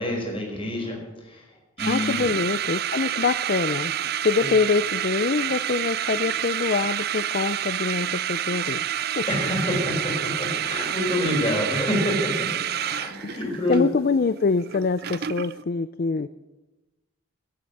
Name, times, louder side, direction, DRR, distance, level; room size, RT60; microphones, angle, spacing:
voice 1, 0.0-2.3 4.4-4.5 9.3-13.8, left 1 dB, 25° left, 0 dB, 4.9 m, -28 dB
voice 2, 1.8-3.9 4.2-8.9 9.2-9.3 13.2-13.4 13.7-16.3, left 4 dB, 45° left, 14 dB, 0.4 m, -25 dB
sound 1, 1.8-15.6, right 10 dB, 45° right, 0.4 m, -28 dB
17.0 x 8.7 x 7.7 m, 1.1 s
head